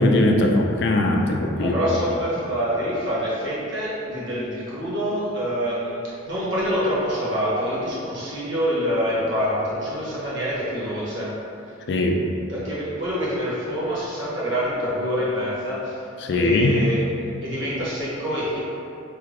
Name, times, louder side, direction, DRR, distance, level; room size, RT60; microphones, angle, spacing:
voice 1, 0.0-1.8 11.9-12.2 16.2-16.8, left 1 dB, 60° left, 2 dB, 0.3 m, -20 dB
voice 2, 1.6-11.3 12.5-16.0 16.3-17.0 17.4-18.6, equal, 70° right, -9 dB, 1.0 m, -26 dB
3.4 x 2.4 x 3.2 m, 2.7 s
head